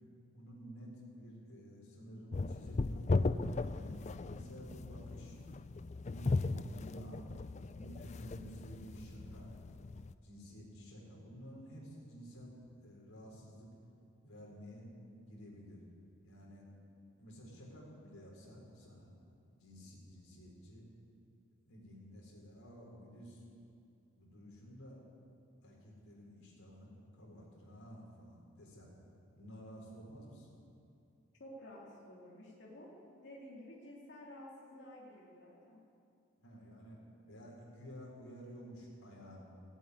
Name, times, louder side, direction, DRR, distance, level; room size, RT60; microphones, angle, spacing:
voice 1, 0.3-3.2 3.7-5.4 6.0-7.2 7.7-9.5 10.2-12.5 12.8-13.7 14.2-14.9 15.3-15.8 16.2-16.7 17.2-19.1 19.6-20.8 21.7-23.4 24.2-25.0 25.6-26.9 27.1-28.9 29.4-30.5 36.4-37.0 37.3-39.4, equal, 85° left, -3 dB, 4.4 m, -52 dB
sound 1, 2.3-10.1, left 3 dB, 35° left, 0.4 m, -37 dB
voice 2, 31.4-35.8, left 1 dB, 55° left, -5 dB, 2.6 m, -52 dB
16.5 x 8.6 x 9.5 m, 2.5 s
head